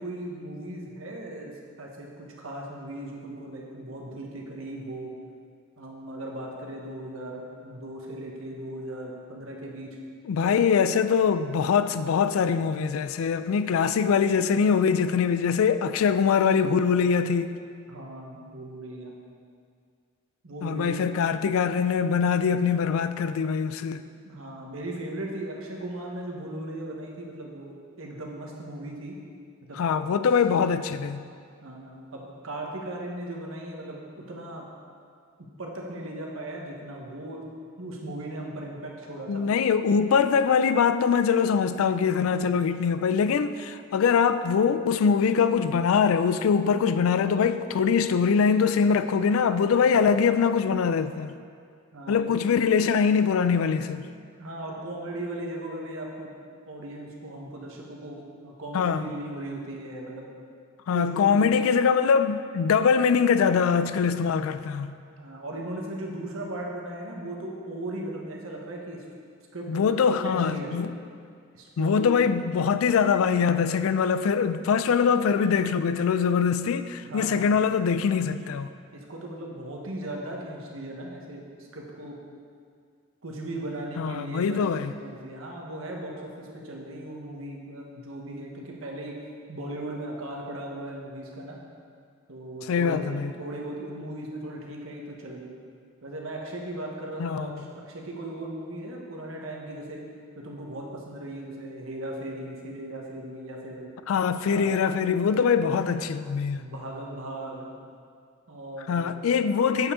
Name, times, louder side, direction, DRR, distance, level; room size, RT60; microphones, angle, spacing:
voice 1, 0.0-5.1 5.8-10.0 10.4-10.7 17.9-19.2 20.4-21.0 24.2-29.2 29.6-29.8 31.6-34.7 35.6-37.5 37.8-39.4 51.9-52.3 54.4-56.3 56.7-60.3 60.9-61.5 65.1-69.0 69.5-70.7 71.5-72.2 77.0-77.5 79.1-82.2 83.2-84.6 85.0-89.2 89.5-91.6 92.3-95.5 96.0-100.0 100.3-103.9 104.4-104.8 106.5-107.7 108.5-109.2, right 1 dB, 75° right, 1.2 m, -37 dB
voice 2, 10.3-17.6 20.6-24.0 29.8-31.2 39.3-51.3 52.1-54.1 58.7-59.0 60.9-64.9 69.7-70.9 71.8-78.7 84.0-84.9 92.7-93.3 97.2-97.6 104.1-106.6 108.9-109.9, left 6 dB, 80° left, 0.3 m, -23 dB
7.7 x 7.1 x 3.7 m
head